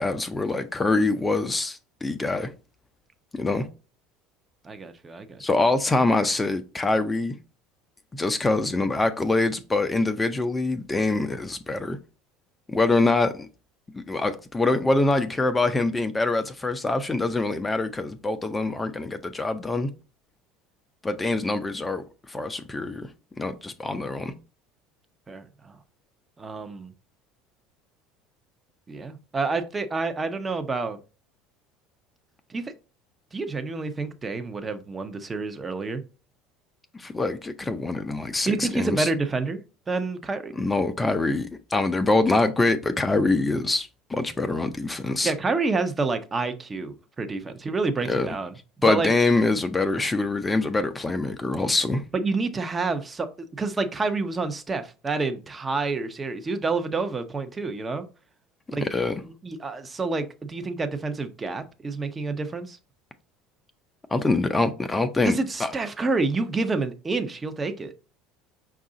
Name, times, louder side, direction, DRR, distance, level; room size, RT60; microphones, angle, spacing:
voice 1, 0.0-2.5 3.3-3.7 5.4-7.3 8.1-12.0 12.7-13.5 13.9-19.9 21.0-23.1 23.4-24.3 36.9-39.1 40.5-45.3 48.1-48.3 48.8-52.0 58.8-59.1 64.1-65.7, left 2 dB, 15° left, 0.5 m, -24 dB
voice 2, 4.6-5.3 25.3-25.7 26.4-26.9 28.9-31.0 32.5-32.7 33.3-36.0 38.5-39.6 39.9-40.5 45.2-48.5 48.9-49.1 52.1-58.0 58.7-58.8 59.4-62.8 65.2-67.9, right 3 dB, 25° right, 0.7 m, -28 dB
5.3 x 2.5 x 3.8 m
hypercardioid pair, 80°, 0 cm